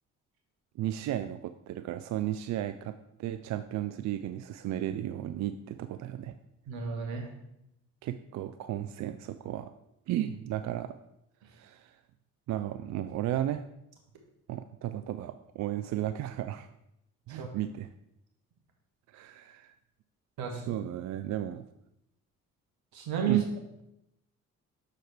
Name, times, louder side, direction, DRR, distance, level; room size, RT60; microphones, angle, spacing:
voice 1, 0.8-6.4 8.0-9.7 10.1-11.0 11.5-12.0 12.5-13.6 14.5-16.7 17.3-17.9 19.1-19.7 20.5-21.6 23.3-23.4, right 12 dB, 45° right, 10 dB, 0.4 m, -34 dB
voice 2, 6.7-7.3 17.4-17.5 20.4-20.6 22.9-23.4, right 8 dB, 60° right, 2 dB, 1.6 m, -31 dB
6.3 x 4.7 x 4.6 m, 0.83 s
figure-of-eight pair, 45°, 41 cm